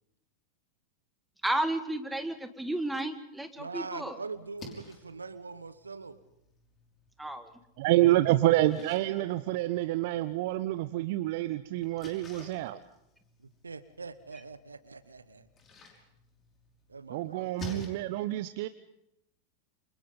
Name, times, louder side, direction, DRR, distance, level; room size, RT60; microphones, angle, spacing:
voice 1, 1.4-4.2 7.2-7.5, right 1 dB, 5° right, 9 dB, 1.9 m, -32 dB
voice 2, 3.6-6.2 13.4-15.5 16.9-18.3, right 4 dB, 75° right, 14 dB, 1.3 m, -43 dB
Splash splatter, 4.3-17.9, left 3 dB, 25° left, 5.7 m, -52 dB
voice 3, 7.8-12.8 17.1-18.7, right 16 dB, 50° right, 13 dB, 0.8 m, -27 dB
29.0 x 28.0 x 4.0 m, 0.82 s
figure-of-eight pair, 90°, 0 cm